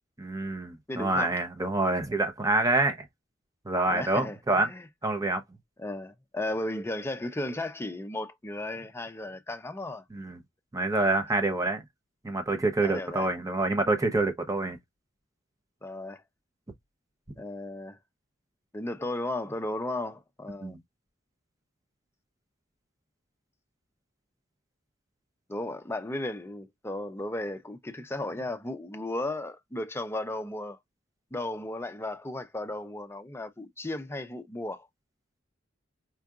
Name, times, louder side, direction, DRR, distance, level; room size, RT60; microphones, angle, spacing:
voice 1, 0.2-3.0 3.6-4.7 5.0-5.4 10.1-10.4 10.7-11.8 12.2-14.8 20.6-20.8, right 2 dB, 20° right, 0.8 m, -27 dB
voice 2, 0.9-1.3 3.9-4.9 5.8-10.0 12.8-13.3 15.8-16.2 17.4-18.0 18.7-20.8 25.5-30.8 31.3-34.9, left 1 dB, 15° left, 0.5 m, -35 dB
4.5 x 2.5 x 2.4 m
head